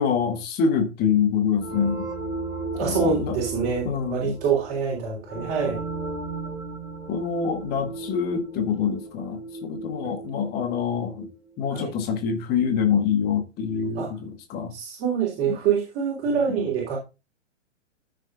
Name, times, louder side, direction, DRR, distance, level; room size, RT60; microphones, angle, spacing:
voice 1, 0.0-2.1 2.8-3.4 3.8-4.3 7.1-11.3 11.6-14.7 15.5-15.6, left 6 dB, 25° left, 1.5 m, -25 dB
sound 1, 1.6-12.0, right 3 dB, 5° right, 3.8 m, -36 dB
voice 2, 2.8-5.8 10.0-10.1 11.7-11.9 14.0-14.1 14.7-17.0, right 6 dB, 35° right, 3.5 m, -25 dB
13.5 x 6.6 x 2.5 m
figure-of-eight pair, 110°, 36 cm